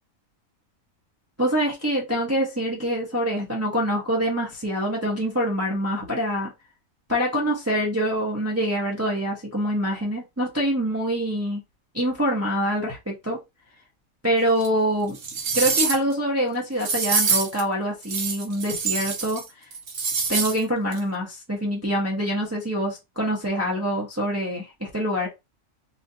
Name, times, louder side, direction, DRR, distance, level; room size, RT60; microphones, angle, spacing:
voice 1, 1.4-6.5 7.1-11.6 11.9-13.4 14.2-15.2 15.5-19.4 20.3-25.3, equal, 15° right, 0.7 m, -25 dB
sound 1, 14.6-14.7 15.2-16.1 16.8-17.6 18.0-19.4 19.7-20.6 20.9-21.0, right 5 dB, 50° right, 0.9 m, -25 dB
3.5 x 2.6 x 2.7 m
omnidirectional pair, 1.4 m